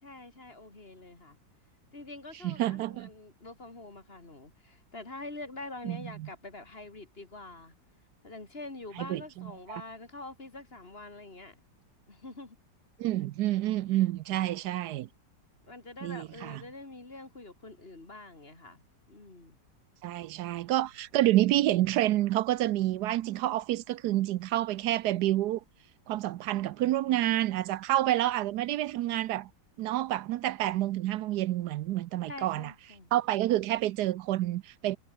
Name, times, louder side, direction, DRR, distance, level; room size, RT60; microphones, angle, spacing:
voice 1, 0.0-1.4 1.9-7.7 8.2-11.6 12.1-12.6 14.3-14.6 15.6-19.6 32.3-33.1, left 2 dB, 30° left, 2.9 m, -45 dB
voice 2, 2.4-3.1 5.8-6.0 9.0-9.8 13.0-15.1 16.0-16.6 20.0-25.6 26.1-29.5 29.8-32.7 33.1-35.0, right 14 dB, 75° right, 1.0 m, -28 dB
omnidirectional pair, 2.0 m